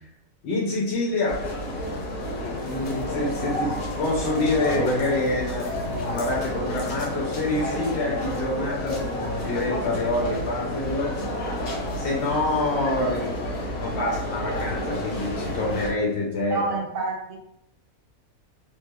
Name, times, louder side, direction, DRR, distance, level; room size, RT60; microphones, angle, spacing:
voice 1, 0.4-1.4 2.4-11.1 12.0-16.6, left 2 dB, 60° left, -3 dB, 0.9 m, -27 dB
sound 1, 1.3-15.9, equal, 90° left, 1.3 m, -30 dB
voice 2, 16.5-17.4, right 3 dB, 70° right, 0 dB, 0.9 m, -28 dB
3.1 x 2.8 x 2.3 m, 0.80 s
omnidirectional pair, 1.4 m